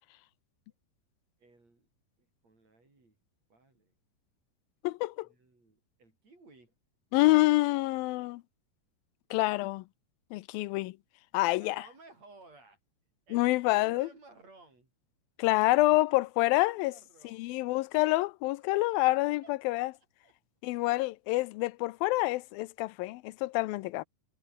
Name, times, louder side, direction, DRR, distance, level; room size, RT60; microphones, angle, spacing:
voice 1, 1.4-1.9 2.2-3.2 3.5-3.9 5.2-6.7 11.6-12.8 13.3-14.9 15.5-15.8 16.0-16.2 16.5-17.6 18.7-18.8 19.4-19.5 19.9-20.3, right 3 dB, 45° right, 9.3 m, -57 dB
voice 2, 4.8-5.3 7.1-8.4 9.3-9.8 10.3-11.0 11.3-11.8 13.3-14.1 15.4-16.9 17.2-19.9 20.6-24.1, left 20 dB, 90° left, 2.5 m, -27 dB
omnidirectional pair, 4.1 m